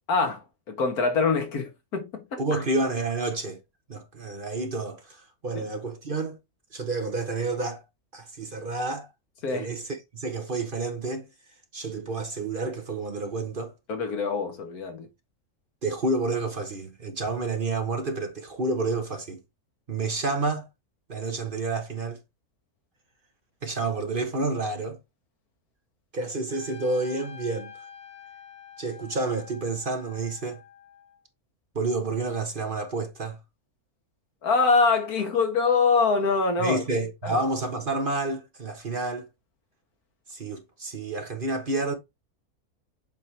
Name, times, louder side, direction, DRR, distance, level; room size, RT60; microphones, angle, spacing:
voice 1, 0.1-2.6 9.4-9.7 13.9-15.1 34.4-36.8 37.2-37.4, left 4 dB, 80° left, 1.9 m, -24 dB
voice 2, 2.4-3.6 3.9-6.4 6.7-7.8 8.1-9.1 9.5-11.3 11.7-13.7 15.8-19.4 19.9-20.7 21.1-22.2 23.6-25.0 26.1-27.7 28.8-30.6 31.7-33.4 36.6-39.3 40.3-41.9, right 3 dB, 40° right, 1.1 m, -29 dB
Trumpet, 26.5-31.2, left 7 dB, 20° left, 2.0 m, -47 dB
7.4 x 4.4 x 3.3 m
omnidirectional pair, 1.6 m